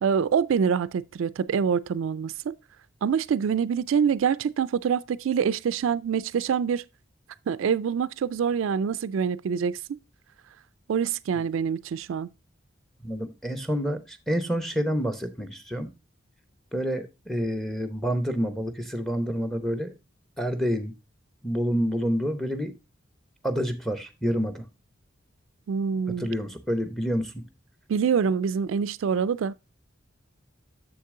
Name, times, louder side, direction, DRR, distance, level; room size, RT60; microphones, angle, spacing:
voice 1, 0.0-2.5 3.0-6.8 7.5-10.0 10.9-12.3 25.7-26.3 27.9-29.5, right 7 dB, 75° right, 0.3 m, -25 dB
voice 2, 13.0-15.9 16.7-19.9 20.4-20.9 21.4-22.7 23.4-24.7 26.1-27.5, equal, ahead, 0.8 m, -28 dB
7.2 x 6.6 x 3.6 m
head